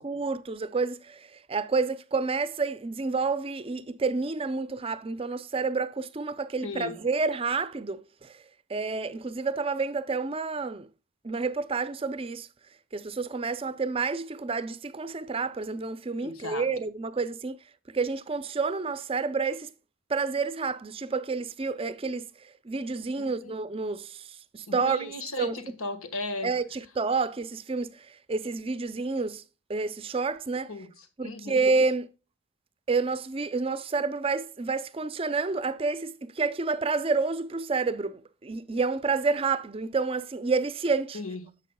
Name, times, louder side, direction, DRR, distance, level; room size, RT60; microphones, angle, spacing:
voice 1, 0.0-8.3 8.7-10.9 11.2-12.5 12.9-17.6 17.9-19.7 20.1-22.2 22.7-24.2 24.5-25.1 25.4-25.5 26.4-27.9 28.3-29.4 29.7-30.7 31.2-32.1 32.9-41.2, right 4 dB, 25° right, 0.5 m, -29 dB
voice 2, 6.6-7.0 16.2-16.7 23.2-23.5 24.7-26.6 30.7-31.6 41.1-41.4, left 3 dB, 85° left, 1.5 m, -36 dB
10.5 x 7.5 x 2.2 m
head